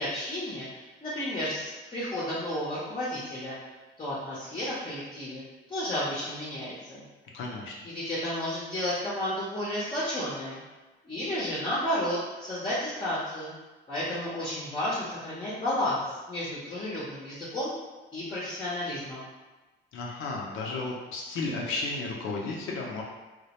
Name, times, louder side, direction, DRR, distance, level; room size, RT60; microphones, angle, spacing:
voice 1, 0.0-3.6 4.0-5.4 5.7-7.0 7.8-10.6 11.0-13.5 13.9-17.7 18.1-19.3, left 1 dB, 25° left, -8 dB, 0.6 m, -32 dB
voice 2, 7.3-7.7 19.9-23.0, left 3 dB, 85° left, -2 dB, 0.5 m, -33 dB
2.2 x 2.1 x 2.8 m, 1.2 s
cardioid pair, 90°, 20 cm